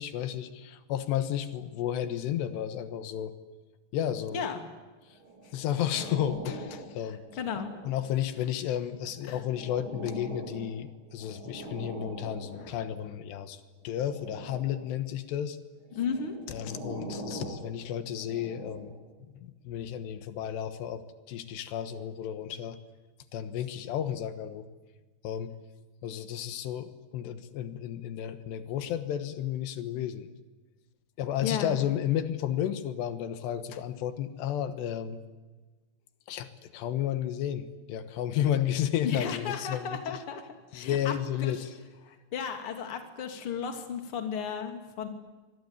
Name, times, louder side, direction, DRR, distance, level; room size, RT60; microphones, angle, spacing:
voice 1, 0.0-3.3 3.9-4.5 5.5-7.2 7.9-15.6 16.5-18.9 19.4-21.0 21.3-22.8 23.3-24.7 25.2-25.5 26.0-30.3 31.2-35.2 36.3-40.2 40.7-41.7, left 10 dB, 85° left, 10 dB, 3.4 m, -32 dB
sound 1, 5.2-8.3 8.9-13.1 13.8-15.0 15.8-19.2 19.8-20.0, right 2 dB, 30° right, 3.6 m, -43 dB
voice 2, 7.1-7.7 9.3-9.4 15.9-16.3 31.4-31.8 39.0-40.4 40.7-41.1 41.4-41.5 42.1-45.1, left 6 dB, 35° left, 5 dB, 2.9 m, -34 dB
26.0 x 21.0 x 9.7 m, 1.3 s
omnidirectional pair, 4.9 m